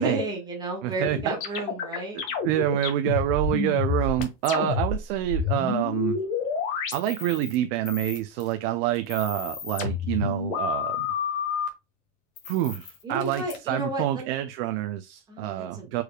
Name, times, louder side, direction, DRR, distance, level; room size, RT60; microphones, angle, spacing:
voice 1, 0.0-2.2 4.5-4.7 13.0-14.3 15.3-16.0, right 1 dB, 10° right, 1.6 m, -32 dB
voice 2, 0.8-1.6 2.1-6.2 6.9-11.1 12.4-16.0, right 13 dB, 50° right, 0.5 m, -27 dB
sound 1, 1.0-7.6 7.9-8.5 9.0-11.7 12.4-13.6, left 6 dB, 65° left, 1.7 m, -29 dB
4.8 x 4.7 x 2.3 m
supercardioid pair, 175°, 38 cm